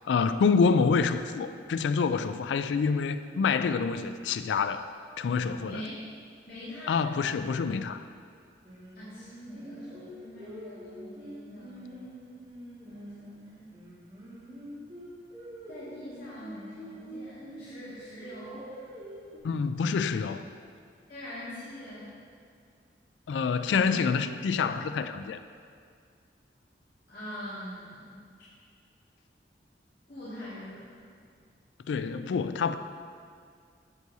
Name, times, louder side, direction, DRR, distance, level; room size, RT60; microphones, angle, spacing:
voice 1, 0.1-4.9 5.2-5.8 6.9-8.0 19.4-20.4 23.3-25.4 31.9-32.7, left 5 dB, 85° left, 11 dB, 0.3 m, -27 dB
voice 2, 5.6-5.9 6.5-7.1 8.9-12.1 12.8-13.7 15.7-18.7 21.1-22.1 27.1-28.2 30.1-31.0, equal, 55° left, -12 dB, 2.1 m, -43 dB
Singing, 8.6-13.3 13.7-17.7 18.2-19.4, right 1 dB, 30° right, 1.9 m, -45 dB
10.5 x 8.0 x 2.8 m, 2.2 s
head